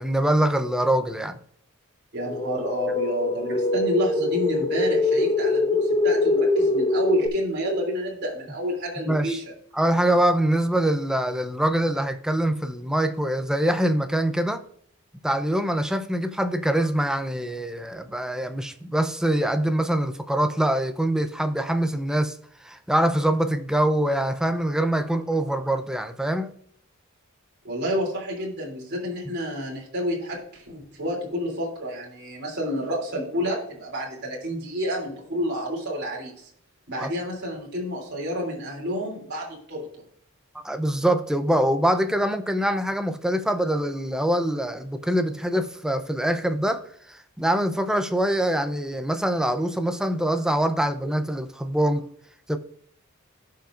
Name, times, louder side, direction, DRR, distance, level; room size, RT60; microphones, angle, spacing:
voice 1, 0.0-1.3 9.0-9.4 9.7-14.6 15.2-26.5 37.0-37.1 40.5-52.1 52.5-52.6, right 1 dB, 5° right, 0.6 m, -24 dB
voice 2, 2.1-5.8 6.0-9.4 27.6-36.5 36.9-39.9, equal, 50° right, 3.1 m, -29 dB
sound 1, 2.3-7.3, left 2 dB, 25° left, 0.9 m, -23 dB
17.0 x 5.7 x 2.5 m
head